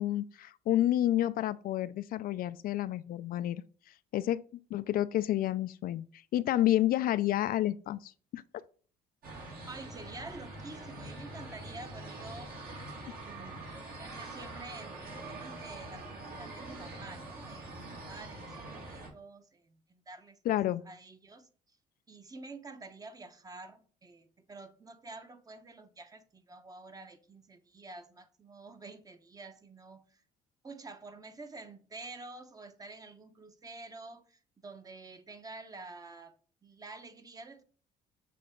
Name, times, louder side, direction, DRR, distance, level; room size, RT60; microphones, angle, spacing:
voice 1, 0.0-3.6 4.1-4.4 4.7-6.1 6.3-8.4 20.5-20.8, left 13 dB, 60° left, 0.4 m, -29 dB
sound 1, 9.2-19.1, right 2 dB, 60° right, 2.9 m, -44 dB
voice 2, 9.7-12.5 13.2-21.5 22.1-30.2 30.6-36.3 36.6-37.6, right 3 dB, 20° right, 0.9 m, -49 dB
6.9 x 4.2 x 3.8 m
cardioid pair, 110°, 17 cm